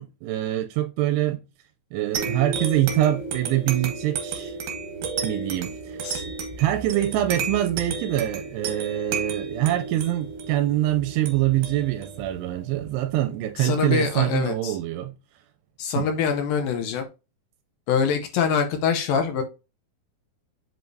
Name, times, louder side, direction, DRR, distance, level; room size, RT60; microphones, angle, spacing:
voice 1, 0.0-1.4 1.9-4.6 5.2-6.1 6.6-15.1 16.0-16.1, right 14 dB, 85° right, 2.6 m, -25 dB
sound 1, 2.1-13.2, right 5 dB, 65° right, 2.7 m, -32 dB
voice 2, 13.6-14.8 15.8-17.0 17.9-19.4, left 6 dB, 75° left, 2.2 m, -24 dB
7.8 x 4.7 x 2.7 m
omnidirectional pair, 4.7 m